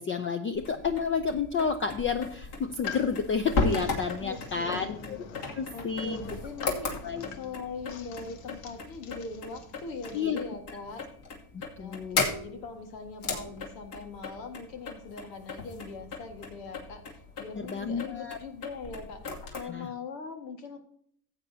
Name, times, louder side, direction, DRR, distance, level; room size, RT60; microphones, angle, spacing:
voice 1, 0.0-5.2 5.6-6.2 7.0-7.3 10.1-10.4 11.5-12.3 17.6-18.4 19.6-19.9, left 5 dB, 25° left, 8 dB, 0.5 m, -30 dB
sound 1, 0.5-19.6, left 3 dB, 55° left, 2.5 m, -36 dB
sound 2, 2.6-10.2, left 7 dB, 70° left, 1.3 m, -45 dB
voice 2, 4.2-5.2 5.5-11.1 11.8-20.8, left 4 dB, 90° left, 5 dB, 1.8 m, -41 dB
15.0 x 8.3 x 2.8 m, 0.64 s
supercardioid pair, 110°, 49 cm